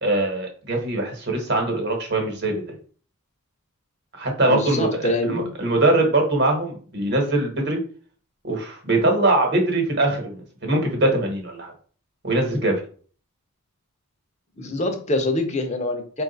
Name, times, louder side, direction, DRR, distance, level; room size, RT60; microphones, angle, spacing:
voice 1, 0.0-2.7 4.1-7.8 8.4-11.7 12.2-12.8, right 2 dB, 50° right, 2 dB, 1.2 m, -22 dB
voice 2, 4.5-5.4 14.6-16.2, left 2 dB, 30° left, 5 dB, 0.7 m, -25 dB
4.7 x 2.4 x 3.9 m, 0.43 s
head